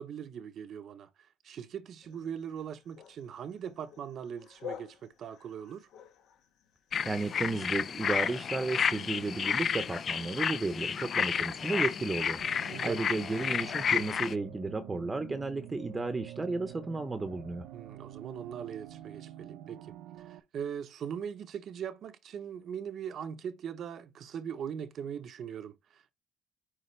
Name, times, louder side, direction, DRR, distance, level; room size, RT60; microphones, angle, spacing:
voice 1, 0.0-5.9 12.7-13.0 17.7-26.1, right 8 dB, 55° right, 0.7 m, -40 dB
sound 1, 2.0-8.2, left 9 dB, 70° left, 1.2 m, -50 dB
sound 2, 6.9-14.3, left 7 dB, 45° left, 0.4 m, -31 dB
voice 2, 7.0-17.7, right 3 dB, 20° right, 0.8 m, -33 dB
sound 3, 12.4-20.4, right 12 dB, 90° right, 0.8 m, -47 dB
9.6 x 3.3 x 3.2 m
cardioid pair, 110°, 0 cm